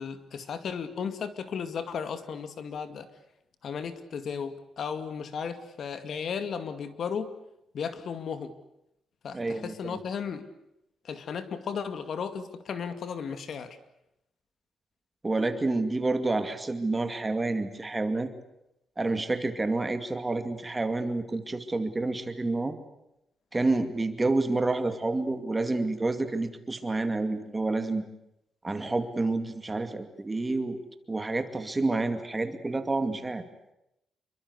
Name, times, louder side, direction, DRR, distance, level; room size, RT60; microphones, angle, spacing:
voice 1, 0.0-3.1 3.6-7.3 7.7-8.5 9.2-10.5 11.0-13.8, left 6 dB, 55° left, 11 dB, 2.2 m, -35 dB
voice 2, 9.3-10.0 15.2-18.3 19.0-22.7 23.5-28.0 28.6-30.8 31.1-33.4, right 2 dB, 15° right, 9 dB, 2.4 m, -29 dB
28.0 x 24.0 x 8.2 m, 0.83 s
cardioid pair, 150°, 0 cm